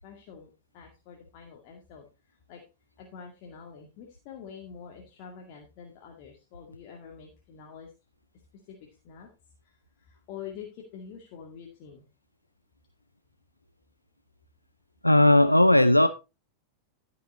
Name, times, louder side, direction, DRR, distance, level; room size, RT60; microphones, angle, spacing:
voice 1, 0.0-2.6 3.0-7.9 8.7-9.3 9.6-12.1, left 7 dB, 45° left, 2.1 m, -46 dB
voice 2, 15.0-16.1, left 1 dB, 85° left, 0.6 m, -17 dB
14.0 x 6.0 x 4.1 m
figure-of-eight pair, 90°, 0 cm